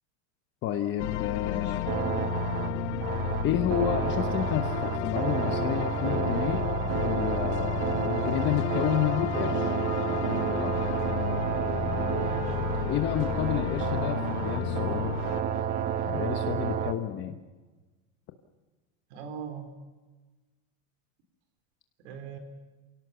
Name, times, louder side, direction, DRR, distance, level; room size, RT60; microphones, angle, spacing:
voice 1, 0.6-1.8 3.4-9.7 10.6-10.7 12.9-15.2 16.1-17.4, left 11 dB, 30° left, 6 dB, 1.1 m, -30 dB
sound 1, 1.0-15.4, left 16 dB, 65° left, 1.0 m, -33 dB
voice 2, 1.5-1.8 12.2-12.6 19.1-19.7 22.0-22.4, right 5 dB, 60° right, 7 dB, 4.2 m, -40 dB
sound 2, 1.9-16.9, right 8 dB, 35° right, 1.4 m, -30 dB
27.0 x 18.0 x 7.0 m, 1.3 s
supercardioid pair, 170°, 39 cm